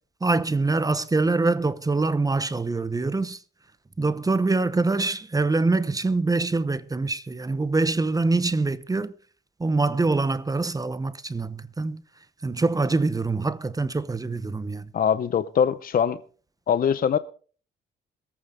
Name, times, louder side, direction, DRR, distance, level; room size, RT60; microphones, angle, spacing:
voice 1, 0.2-3.4 4.0-9.1 9.6-12.0 12.4-14.9, right 3 dB, 20° right, 0.8 m, -24 dB
voice 2, 14.9-16.2 16.7-17.2, left 8 dB, 45° left, 0.7 m, -22 dB
22.5 x 8.8 x 3.7 m
cardioid pair, 90°, 20 cm